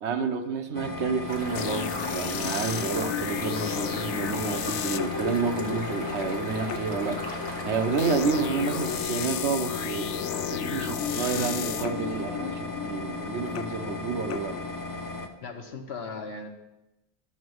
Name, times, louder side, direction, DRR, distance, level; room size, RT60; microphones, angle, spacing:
voice 1, 0.0-7.2 7.6-10.2 10.5-14.6, right 5 dB, 75° right, 7 dB, 1.1 m, -30 dB
sound 1, 0.7-15.3, left 2 dB, 20° left, 0.6 m, -36 dB
sound 2, 1.3-9.0, left 1 dB, 45° left, 1.7 m, -39 dB
sound 3, 1.5-15.3, left 9 dB, 85° left, 0.9 m, -34 dB
voice 2, 15.4-16.5, left 4 dB, 70° left, 4 dB, 1.1 m, -37 dB
11.5 x 4.0 x 7.7 m, 0.94 s
omnidirectional pair, 1.2 m